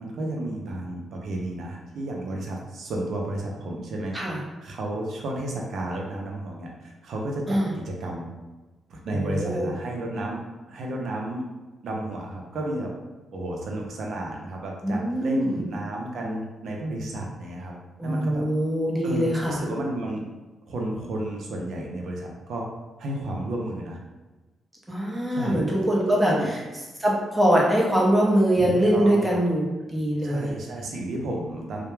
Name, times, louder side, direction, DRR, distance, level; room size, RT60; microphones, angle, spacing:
voice 1, 0.0-4.2 4.6-8.3 8.9-10.4 10.7-11.4 11.8-12.9 13.3-17.7 18.0-18.5 19.0-20.2 20.7-22.6 23.0-24.0 25.3-25.6 26.2-26.5 28.6-29.4 30.2-31.9, right 1 dB, 70° right, 0 dB, 0.5 m, -32 dB
voice 2, 9.1-9.7 14.8-15.6 18.0-19.6 24.9-26.3 27.0-30.5, right 1 dB, 10° right, -4 dB, 0.7 m, -23 dB
2.2 x 2.1 x 3.1 m, 1.2 s
cardioid pair, 90°, 0 cm